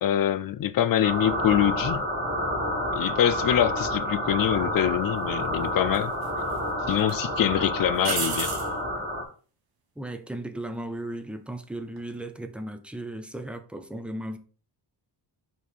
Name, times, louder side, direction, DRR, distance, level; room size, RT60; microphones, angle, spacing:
voice 1, 0.0-2.0 2.9-6.1 6.9-8.5, left 11 dB, 55° left, 0.5 m, -24 dB
Space Boom, 1.0-9.2, equal, 20° right, 1.7 m, -29 dB
sound 1, 4.7-4.8 5.9-6.6 7.0-7.1 8.0-8.7 11.8-12.2, right 5 dB, 55° right, 1.4 m, -31 dB
voice 2, 10.0-14.4, right 1 dB, 5° right, 0.5 m, -36 dB
5.4 x 4.7 x 4.1 m
wide cardioid pair, 165°, 43 cm